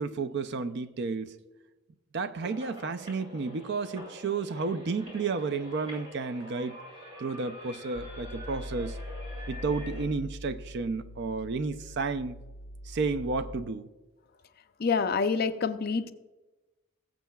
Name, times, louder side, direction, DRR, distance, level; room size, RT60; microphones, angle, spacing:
voice 1, 0.0-1.3 2.1-6.8 7.2-9.0 9.5-12.4 12.9-13.9, right 4 dB, 50° right, 0.4 m, -32 dB
sound 1, 2.4-10.0, equal, 25° right, 2.9 m, -46 dB
sound 2, 7.9-13.6, left 1 dB, 65° left, 0.8 m, -42 dB
voice 2, 14.8-16.1, left 5 dB, 45° left, 0.4 m, -27 dB
21.0 x 7.4 x 2.3 m
head